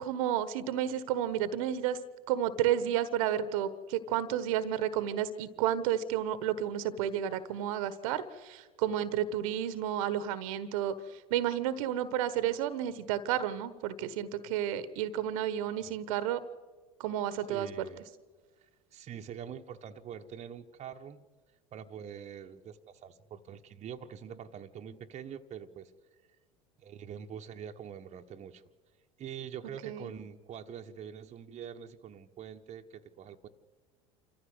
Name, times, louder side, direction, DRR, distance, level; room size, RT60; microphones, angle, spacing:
voice 1, 0.0-2.0 2.3-16.4 17.0-17.7 29.8-30.1, right 10 dB, 70° right, 15 dB, 1.3 m, -31 dB
voice 2, 17.5-18.0 18.9-21.3 21.7-25.9 26.8-28.6 29.2-33.5, right 8 dB, 40° right, 4 dB, 1.2 m, -44 dB
27.0 x 14.5 x 8.0 m, 1.4 s
hypercardioid pair, 75°, 18 cm